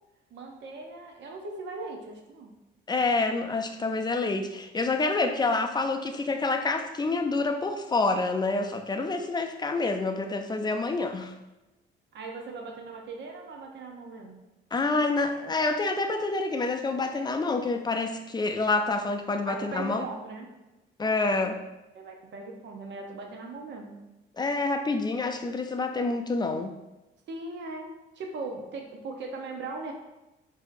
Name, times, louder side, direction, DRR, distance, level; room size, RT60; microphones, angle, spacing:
voice 1, 0.3-2.5 12.1-14.4 19.5-20.5 21.9-24.0 27.3-29.9, right 3 dB, 65° right, 2 dB, 0.7 m, -39 dB
voice 2, 2.9-11.3 14.7-20.0 21.0-21.6 24.4-26.7, left 3 dB, 20° left, 6 dB, 0.4 m, -27 dB
4.8 x 2.7 x 2.5 m, 1.0 s
cardioid pair, 90°, 20 cm